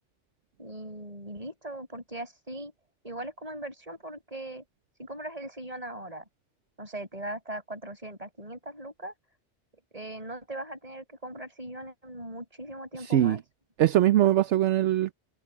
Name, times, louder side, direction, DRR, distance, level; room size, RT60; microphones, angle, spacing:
voice 1, 0.6-2.7 3.0-4.6 5.0-6.2 6.8-9.1 9.9-13.4, right 1 dB, 30° right, 6.3 m, -39 dB
voice 2, 13.0-13.4 13.8-15.1, right 12 dB, 75° right, 1.0 m, -22 dB
omnidirectional pair, 1.2 m